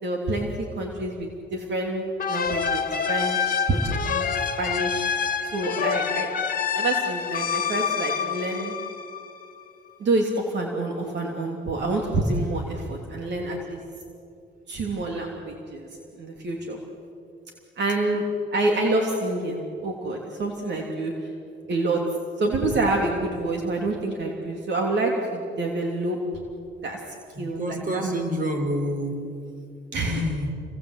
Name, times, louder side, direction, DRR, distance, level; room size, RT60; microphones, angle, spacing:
voice 1, 0.0-4.3 4.6-5.2 5.5-6.3 6.7-8.8 10.0-13.8 14.7-15.9 16.2-16.8 17.8-18.2 18.5-21.3 21.7-22.0 22.4-26.2 26.8-27.0 27.4-28.2 29.9-30.2, right 2 dB, 60° right, 1 dB, 3.2 m, -27 dB
sound 1, 2.2-9.6, left 7 dB, 45° left, 1.8 m, -27 dB
voice 2, 27.4-29.2 30.1-30.5, equal, 40° right, 5 dB, 4.8 m, -28 dB
29.5 x 22.5 x 8.3 m, 2.5 s
cardioid pair, 90°, 20 cm